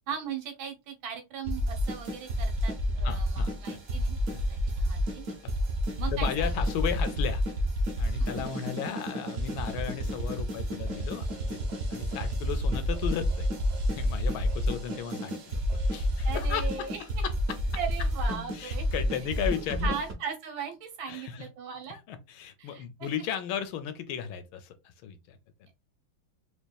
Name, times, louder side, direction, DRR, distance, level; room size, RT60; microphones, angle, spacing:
voice 1, 0.1-4.2 4.5-5.2 6.0-6.6 8.2-8.5 16.2-17.2 17.7-18.9 19.8-22.0 22.6-23.1, right 7 dB, 75° right, 1.7 m, -38 dB
sound 1, 1.4-20.1, equal, 50° right, 1.1 m, -30 dB
voice 2, 3.0-3.8 4.3-4.4 6.1-7.4 8.0-13.5 13.9-15.7 15.9-17.3 18.5-20.0 21.1-21.5 21.9-25.7, left 9 dB, 80° left, 1.4 m, -35 dB
4.5 x 2.9 x 2.3 m
omnidirectional pair, 2.3 m